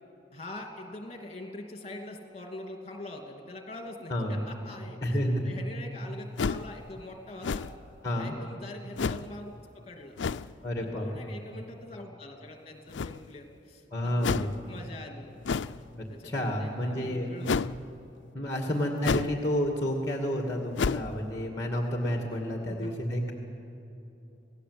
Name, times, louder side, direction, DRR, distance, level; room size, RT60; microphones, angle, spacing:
voice 1, 0.3-5.2 5.4-7.7 8.1-10.1 10.8-15.3 16.1-17.9 18.6-19.4 22.7-22.9, left 2 dB, 35° left, 3 dB, 2.8 m, -44 dB
voice 2, 5.0-5.5 8.0-8.3 10.6-11.3 13.9-14.5 15.9-17.3 18.3-23.3, equal, 20° left, 2 dB, 2.1 m, -30 dB
sound 1, 6.4-6.7 7.4-7.9 9.0-9.3 10.2-10.5 12.9-13.4 14.2-14.6 15.4-15.8 17.4-17.8 19.0-19.4 19.7-19.8 20.8-21.1, left 5 dB, 80° left, 0.5 m, -30 dB
27.5 x 17.5 x 8.1 m, 2.9 s
head